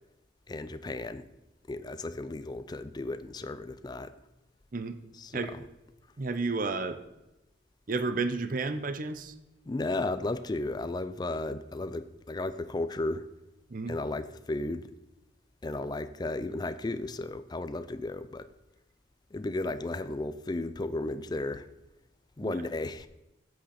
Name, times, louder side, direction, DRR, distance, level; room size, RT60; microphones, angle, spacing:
voice 1, 0.5-1.3 1.7-4.1 5.2-5.6 9.7-13.2 13.9-14.9 15.6-18.5 19.3-21.7 22.4-23.1, left 2 dB, 20° left, 12 dB, 0.4 m, -34 dB
voice 2, 6.2-7.0 7.9-9.3 13.7-14.0 22.4-22.5, right 3 dB, 45° right, 10 dB, 0.6 m, -31 dB
8.4 x 7.9 x 4.2 m, 0.98 s
head